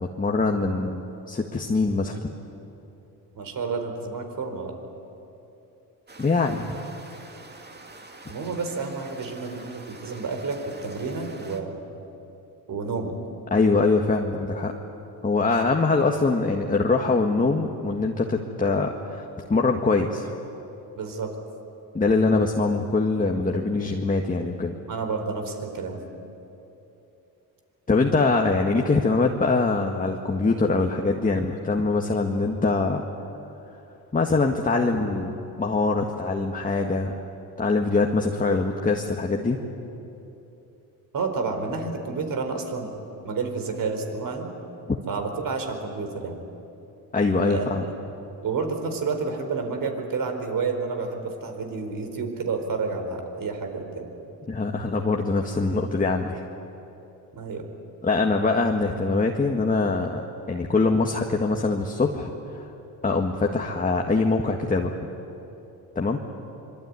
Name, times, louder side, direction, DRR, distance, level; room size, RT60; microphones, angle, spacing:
voice 1, 0.0-2.3 6.2-6.7 13.5-14.7 15.2-20.3 21.9-24.7 27.9-33.0 34.1-37.2 37.6-39.6 47.1-47.8 54.5-56.4 58.0-60.1 60.5-62.7 63.0-65.0 66.0-66.2, left 3 dB, 20° left, 2 dB, 1.8 m, -23 dB
voice 2, 3.3-4.8 8.3-11.8 12.7-13.2 21.0-21.3 24.9-26.0 41.1-43.0 43.2-44.5 45.1-46.4 47.4-47.7 48.4-54.1 57.3-57.6, right 4 dB, 55° right, 5 dB, 4.5 m, -30 dB
sound 1, 6.1-11.6, right 3 dB, 25° right, 2.6 m, -46 dB
25.5 x 23.5 x 9.8 m, 2.9 s
cardioid pair, 100°, 40 cm